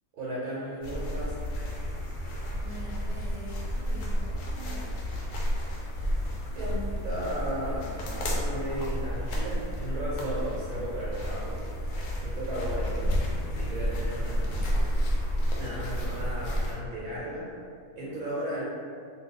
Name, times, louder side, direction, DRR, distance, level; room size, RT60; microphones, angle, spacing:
voice 1, 0.1-1.4 6.5-11.6 12.2-13.1 13.6-14.7 15.4-17.5 17.9-18.6, equal, 80° right, -8 dB, 1.2 m, -35 dB
sound 1, 0.8-16.7, equal, 90° left, 1.1 m, -31 dB
voice 2, 2.6-5.4, equal, 30° left, -8 dB, 0.7 m, -45 dB
2.8 x 2.4 x 3.7 m, 2.2 s
omnidirectional pair, 1.5 m